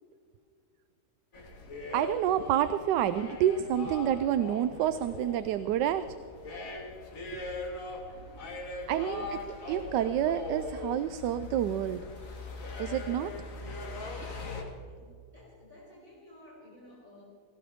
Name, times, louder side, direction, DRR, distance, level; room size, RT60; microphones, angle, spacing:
sound 1, 1.3-14.6, left 3 dB, 50° left, 2.2 m, -40 dB
voice 1, 1.9-6.1 7.3-7.4 8.9-12.0 12.8-13.3, right 10 dB, 85° right, 12 dB, 1.2 m, -28 dB
voice 2, 7.6-8.6 8.9-9.4 14.7-17.2, left 1 dB, 30° right, -7 dB, 4.4 m, -55 dB
19.0 x 17.5 x 3.6 m, 2.2 s
omnidirectional pair, 1.8 m